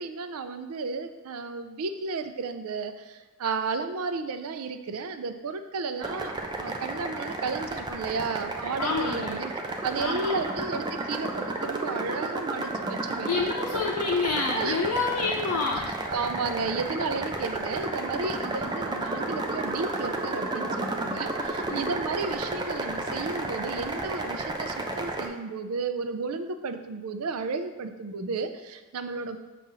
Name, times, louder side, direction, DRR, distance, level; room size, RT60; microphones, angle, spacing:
voice 1, 0.0-6.3 6.6-9.5 9.8-13.5 14.5-14.8 16.1-29.4, right 4 dB, 75° right, 9 dB, 0.5 m, -33 dB
sound 1, 6.0-25.3, right 2 dB, 20° right, 0.5 m, -32 dB
voice 2, 8.8-9.4 10.0-10.6 13.3-15.9 21.7-21.9, left 4 dB, 85° left, -1 dB, 0.6 m, -28 dB
6.7 x 2.5 x 5.6 m, 1.3 s
head